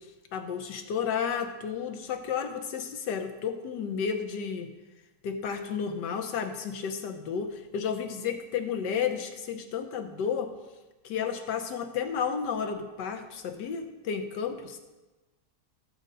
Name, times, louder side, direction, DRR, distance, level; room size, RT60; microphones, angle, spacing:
voice 1, 0.3-4.7 5.2-10.5 11.0-14.8, left 7 dB, 85° left, 6 dB, 1.6 m, -32 dB
14.0 x 7.9 x 4.0 m, 1.1 s
omnidirectional pair, 1.8 m